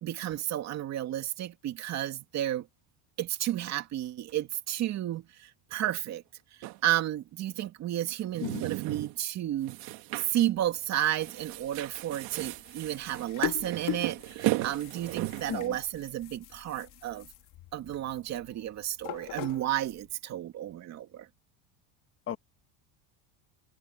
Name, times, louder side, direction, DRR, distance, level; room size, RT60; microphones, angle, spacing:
voice 1, 0.0-2.7 3.2-6.2 6.6-9.7 10.1-17.3 17.7-21.3, right 12 dB, 40° right, 2.5 m, -32 dB
sound 1, 6.6-6.8 8.2-9.2 9.6-10.5 10.8-10.9 11.2-15.6, right 19 dB, 55° right, 2.0 m, -35 dB
voice 2, 8.4-8.7 15.5-15.8 22.3-22.4, left 9 dB, 30° left, 2.0 m, -35 dB
sound 2, 10.5-20.1, left 14 dB, 45° left, 3.1 m, -42 dB
cardioid pair, 160°, 42 cm